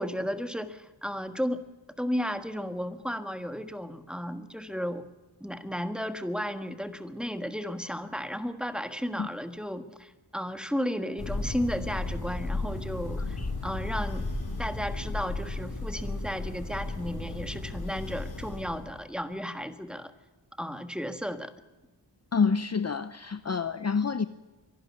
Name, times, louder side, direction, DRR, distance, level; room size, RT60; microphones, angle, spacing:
voice 1, 0.0-1.6 2.0-5.0 5.4-14.3 14.6-20.1 20.6-21.5, equal, ahead, 9 dB, 1.5 m, -34 dB
Thunder, 11.2-19.1, left 2 dB, 55° left, 5.2 m, -34 dB
voice 2, 22.3-24.2, left 5 dB, 35° left, 13 dB, 0.7 m, -27 dB
23.5 x 12.0 x 9.5 m, 1.1 s
cardioid pair, 75°, 43 cm